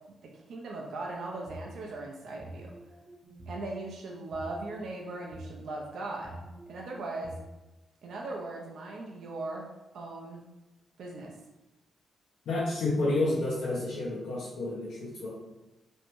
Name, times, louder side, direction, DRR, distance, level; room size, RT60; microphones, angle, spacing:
voice 1, 0.2-2.7 3.5-6.3 6.7-7.4 8.0-9.7 9.9-10.4 11.0-11.3, right 2 dB, 75° right, -1 dB, 0.4 m, -39 dB
sound 1, 1.0-1.7 2.2-3.6 4.2-5.5 6.1-7.4, right 2 dB, 40° right, 0.7 m, -47 dB
voice 2, 12.5-15.3, left 2 dB, 85° left, -7 dB, 0.6 m, -30 dB
2.6 x 2.1 x 3.0 m, 1.0 s
cardioid pair, 65°, 0 cm